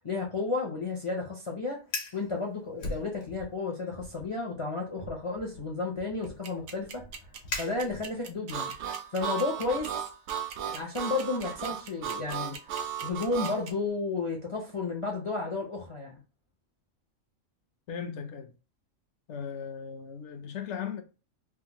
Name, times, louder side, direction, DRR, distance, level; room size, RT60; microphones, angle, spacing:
voice 1, 0.0-1.8 2.1-7.0 7.5-8.7 9.1-10.0 10.6-16.2, left 3 dB, 40° left, 0.4 m, -32 dB
Fire, 1.8-2.2 2.8-3.6 3.9-4.3 5.0-8.3, left 2 dB, 85° left, 1.3 m, -40 dB
sound 1, 6.2-13.7, right 6 dB, 85° right, 1.0 m, -42 dB
Harmonica, 8.5-13.6, right 9 dB, 65° right, 0.8 m, -35 dB
voice 2, 17.9-18.5 19.3-21.0, left 7 dB, 70° left, 0.9 m, -37 dB
3.5 x 2.0 x 2.8 m
omnidirectional pair, 1.3 m